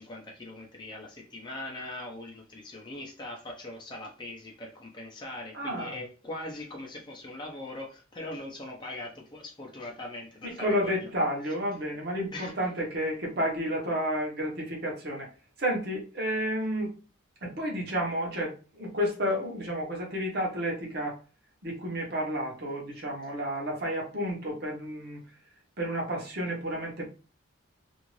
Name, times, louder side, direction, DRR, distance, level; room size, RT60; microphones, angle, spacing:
voice 1, 0.0-11.1 12.3-12.5, left 2 dB, 20° left, -1 dB, 0.6 m, -41 dB
voice 2, 5.5-6.0 10.4-15.3 15.6-16.9 17.4-21.2 21.6-25.2 25.8-27.1, equal, 50° right, -2 dB, 1.0 m, -31 dB
2.6 x 2.4 x 3.1 m, 0.35 s
head